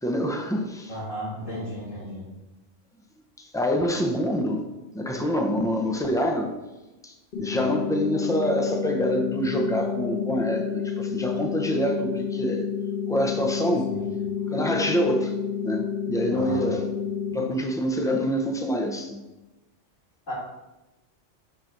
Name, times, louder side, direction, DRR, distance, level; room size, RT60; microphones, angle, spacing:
voice 1, 0.0-0.9 3.4-4.6 4.9-6.6 7.0-12.7 13.1-13.9 14.5-16.8 17.3-19.2, equal, 5° left, 3 dB, 0.4 m, -26 dB
voice 2, 0.9-2.3 13.9-14.1 16.3-16.7 20.3-20.4, equal, 75° left, -6 dB, 3.0 m, -34 dB
sound 1, 7.3-17.3, left 7 dB, 45° left, 1.1 m, -30 dB
6.4 x 5.9 x 3.9 m, 1.0 s
omnidirectional pair, 1.3 m